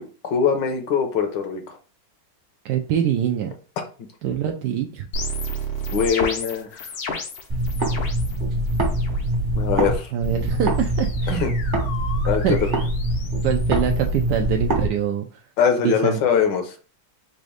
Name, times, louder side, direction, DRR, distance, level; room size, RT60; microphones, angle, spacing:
voice 1, 0.0-1.8 5.9-6.9 9.5-10.1 11.3-11.5 12.3-12.6 15.6-16.8, left 7 dB, 70° left, 5 dB, 1.4 m, -22 dB
voice 2, 2.6-3.5 4.2-5.1 10.1-11.5 12.4-12.6 13.4-15.4 15.8-16.2, right 9 dB, 80° right, 3 dB, 0.9 m, -24 dB
sound 1, 5.1-8.4 8.7-9.2 10.2-14.4, equal, 85° left, 1.8 m, -33 dB
sound 2, 7.5-9.9 10.2-14.9, right 1 dB, 35° right, 0.8 m, -23 dB
4.1 x 2.6 x 4.8 m, 0.37 s
omnidirectional pair, 2.3 m